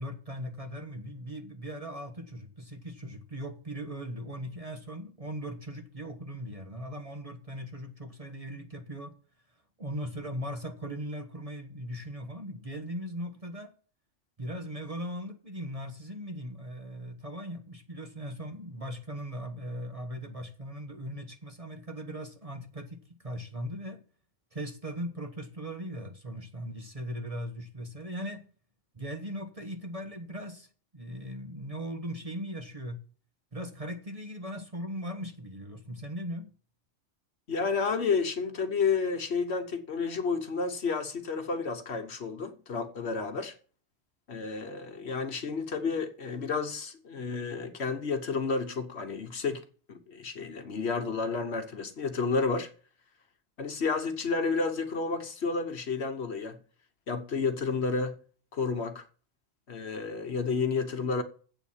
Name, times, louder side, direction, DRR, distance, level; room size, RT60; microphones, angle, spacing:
voice 1, 0.0-9.1 9.8-13.7 14.4-24.0 24.5-28.4 28.9-33.0 33.5-36.5, equal, 30° right, 1.2 m, -39 dB
voice 2, 37.5-43.5 44.3-52.7 53.6-56.6 57.1-58.2 58.5-59.0 59.7-61.2, left 4 dB, 55° left, 1.3 m, -31 dB
8.1 x 7.0 x 7.3 m
omnidirectional pair, 1.3 m